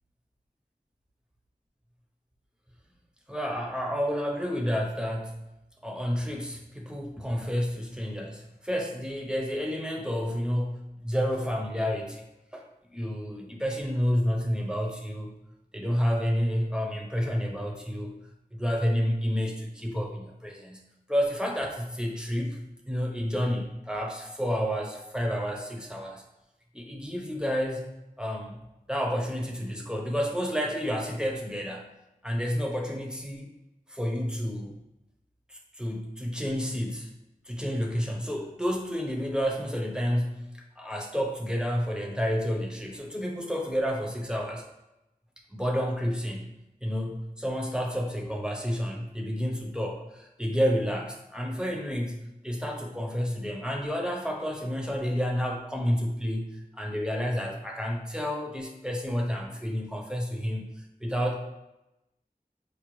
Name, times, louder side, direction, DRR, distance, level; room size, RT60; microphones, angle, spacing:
voice 1, 3.3-5.4 5.8-12.2 12.5-15.3 15.7-18.1 18.5-20.8 21.1-22.6 22.9-26.2 26.7-27.9 28.2-28.6 28.9-31.9 32.2-33.5 33.9-34.7 35.5-37.1 37.5-44.6 45.5-46.5 46.8-61.4, equal, 5° right, 0 dB, 0.6 m, -30 dB
4.6 x 2.2 x 3.0 m, 0.93 s
wide cardioid pair, 50°, 15 cm